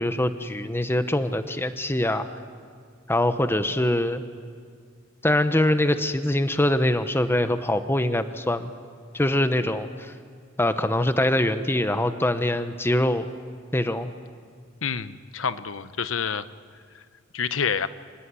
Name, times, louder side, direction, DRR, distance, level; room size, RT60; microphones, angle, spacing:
voice 1, 0.0-2.3 3.1-4.2 5.2-8.7 9.1-10.1 10.6-13.3 13.7-14.1, left 1 dB, 10° left, 10 dB, 0.8 m, -23 dB
voice 2, 14.8-16.4 16.9-17.0 17.3-17.9, left 6 dB, 75° left, 14 dB, 0.9 m, -28 dB
26.0 x 16.0 x 9.7 m, 2.1 s
head